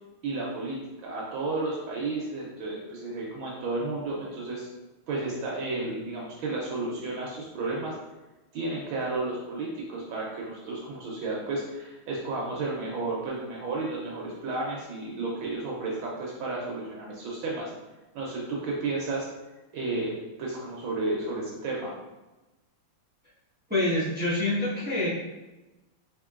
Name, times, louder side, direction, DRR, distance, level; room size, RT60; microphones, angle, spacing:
voice 1, 0.2-4.7 5.1-7.9 8.5-17.7 18.1-19.3 19.7-20.1 20.4-21.9, right 2 dB, 70° right, -4 dB, 1.5 m, -32 dB
voice 2, 23.7-25.1, left 1 dB, 15° right, -9 dB, 0.4 m, -26 dB
4.8 x 3.7 x 2.4 m, 1.1 s
omnidirectional pair, 2.4 m